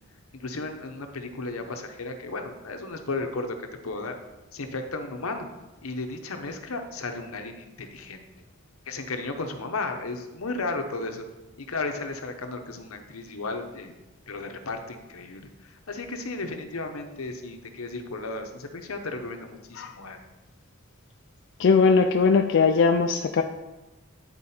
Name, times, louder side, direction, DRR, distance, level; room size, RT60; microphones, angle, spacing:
voice 1, 0.3-4.2 4.5-5.5 5.8-8.2 8.9-11.2 11.6-13.9 14.3-20.2, left 3 dB, 85° left, 5 dB, 0.9 m, -34 dB
voice 2, 21.6-23.4, left 5 dB, 60° left, 4 dB, 0.4 m, -20 dB
9.5 x 4.5 x 4.3 m, 1.1 s
head